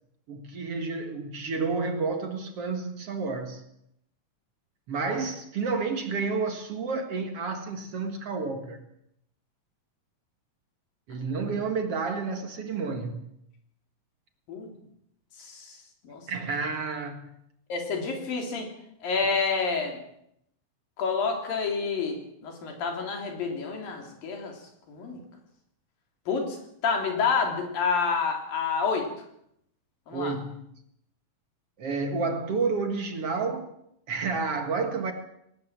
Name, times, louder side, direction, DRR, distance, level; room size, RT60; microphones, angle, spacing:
voice 1, 0.3-3.6 4.9-8.8 11.1-13.3 16.3-17.2 30.1-30.5 31.8-33.7 34.1-35.1, right 4 dB, 50° right, 6 dB, 2.3 m, -30 dB
voice 2, 15.4-15.8 16.0-16.2 17.7-18.7 19.0-20.0 21.0-24.5 24.9-25.2 26.3-26.6 26.8-29.1 30.1-30.3, left 5 dB, 85° left, 3 dB, 5.0 m, -28 dB
19.5 x 18.5 x 7.4 m, 0.75 s
omnidirectional pair, 3.9 m